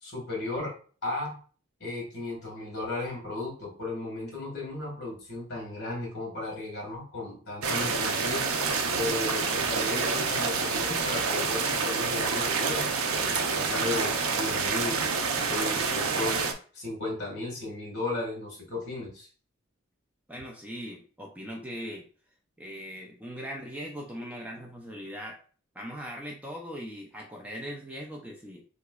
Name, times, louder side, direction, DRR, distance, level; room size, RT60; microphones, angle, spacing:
voice 1, 0.0-1.4 1.8-8.5 9.0-15.0 15.5-16.4 16.7-19.3, left 2 dB, 50° left, -2 dB, 1.5 m, -35 dB
sound 1, 7.6-16.5, right 4 dB, 85° right, 0.5 m, -28 dB
voice 2, 20.3-22.0 22.6-25.4 25.7-28.6, equal, 5° right, -1 dB, 0.4 m, -40 dB
3.6 x 3.0 x 2.3 m, 0.40 s
head